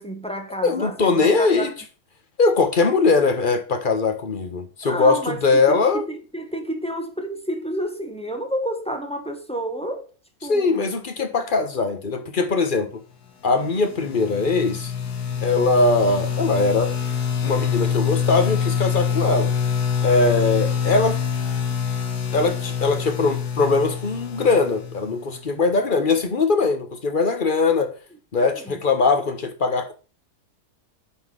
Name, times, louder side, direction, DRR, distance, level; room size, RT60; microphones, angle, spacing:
voice 1, 0.0-1.7 4.8-10.1 10.4-10.9 28.4-28.7, right 1 dB, 5° left, 1.0 m, -30 dB
voice 2, 0.6-1.7 2.4-6.0 10.5-12.9 13.4-14.9 15.4-16.9 17.4-19.5 20.0-21.2 22.3-27.9 28.3-29.9, left 3 dB, 35° left, 1.3 m, -21 dB
sound 1, 13.6-25.4, left 7 dB, 75° left, 1.7 m, -25 dB
9.9 x 4.2 x 5.3 m
omnidirectional pair, 1.7 m